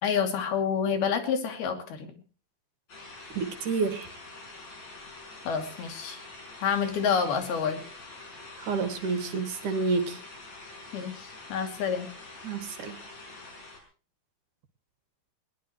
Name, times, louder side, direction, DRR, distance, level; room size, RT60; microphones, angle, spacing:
voice 1, 0.0-2.1 5.5-6.2 6.6-7.8 10.9-12.1, left 7 dB, 85° left, 6 dB, 4.6 m, -28 dB
sound 1, 2.9-13.8, left 2 dB, 45° left, 6.7 m, -46 dB
voice 2, 3.3-4.1 8.6-10.2 12.4-13.0, right 4 dB, 60° right, 10 dB, 3.1 m, -29 dB
21.0 x 19.5 x 3.1 m, 0.38 s
omnidirectional pair, 4.3 m